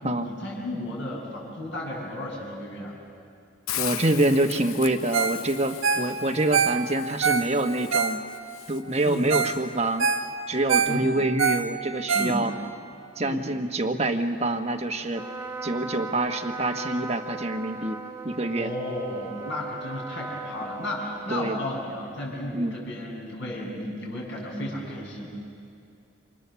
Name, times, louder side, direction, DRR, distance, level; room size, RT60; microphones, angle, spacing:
voice 1, 0.0-2.9 9.0-9.2 10.9-11.1 12.1-12.4 13.2-13.4 18.6-25.3, left 1 dB, 55° left, -3 dB, 7.6 m, -34 dB
Hiss, 3.7-9.7, left 12 dB, 85° left, 0.7 m, -39 dB
voice 2, 3.8-8.2 8.7-10.1 10.5-12.5 13.2-15.2 15.6-18.0 18.2-18.7 21.3-21.6 22.5-22.7, right 2 dB, 30° right, 6 dB, 1.3 m, -26 dB
Ringtone, 5.1-5.4 5.7-8.6 9.0-9.1 9.3-9.6 9.9-12.7 13.2-13.3, right 5 dB, 70° right, 1.2 m, -25 dB
Trumpet, 15.1-21.9, right 3 dB, 10° right, 2.1 m, -38 dB
29.0 x 26.5 x 7.1 m, 2.3 s
head